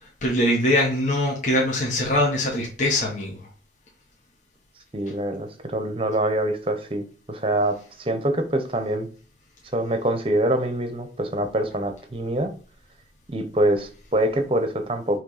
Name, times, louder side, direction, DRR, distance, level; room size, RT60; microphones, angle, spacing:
voice 1, 0.2-3.3, left 1 dB, 45° left, -3 dB, 1.3 m, -22 dB
voice 2, 4.9-9.1 9.7-12.5 13.3-15.2, right 1 dB, 30° right, 7 dB, 0.8 m, -25 dB
6.3 x 3.1 x 4.9 m, 0.39 s
head